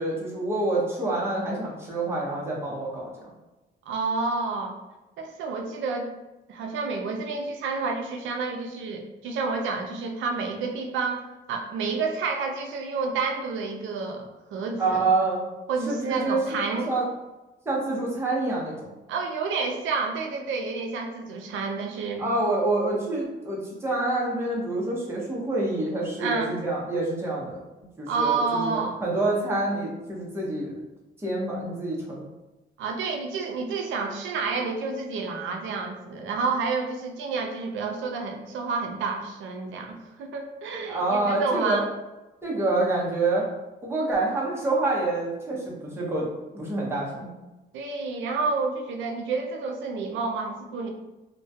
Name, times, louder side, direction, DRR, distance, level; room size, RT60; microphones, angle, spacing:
voice 1, 0.0-3.3 14.8-15.4 15.9-17.1 17.7-18.9 22.2-27.6 28.0-30.8 31.2-32.3 40.9-41.9 42.4-43.5 43.8-46.3 46.5-47.3, right 2 dB, 10° right, -5 dB, 0.7 m, -27 dB
voice 2, 3.9-4.8 5.2-6.1 6.5-15.0 15.7-16.9 19.1-22.3 26.2-26.5 28.1-29.0 32.8-41.8 47.7-50.9, right 4 dB, 75° right, 3 dB, 0.5 m, -29 dB
2.2 x 2.1 x 2.6 m, 1.0 s
cardioid pair, 90°, 20 cm